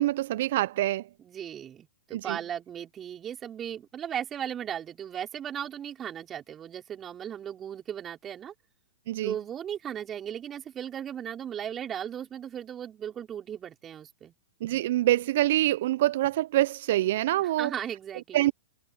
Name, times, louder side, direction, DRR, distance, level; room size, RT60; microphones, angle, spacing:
voice 1, 0.0-1.1 2.1-2.4 9.1-9.3 14.6-17.7 18.3-18.5, right 15 dB, 60° right, 0.7 m, -25 dB
voice 2, 1.2-8.5 9.2-14.3 17.4-18.5, right 9 dB, 25° right, 5.5 m, -37 dB
hypercardioid pair, 105°, 0 cm